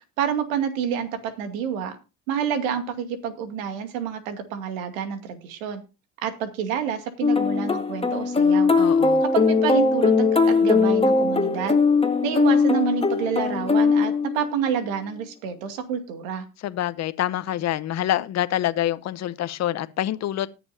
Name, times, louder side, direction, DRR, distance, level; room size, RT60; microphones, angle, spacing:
voice 1, 0.2-2.0 2.3-5.8 6.2-8.7 9.2-11.8 12.2-16.4, right 8 dB, 85° right, 2.4 m, -28 dB
sound 1, 7.2-14.7, left 4 dB, 15° left, 1.6 m, -20 dB
voice 2, 8.8-9.2 16.6-20.5, left 12 dB, 40° left, 0.9 m, -26 dB
19.5 x 7.1 x 2.7 m
supercardioid pair, 95°, 39 cm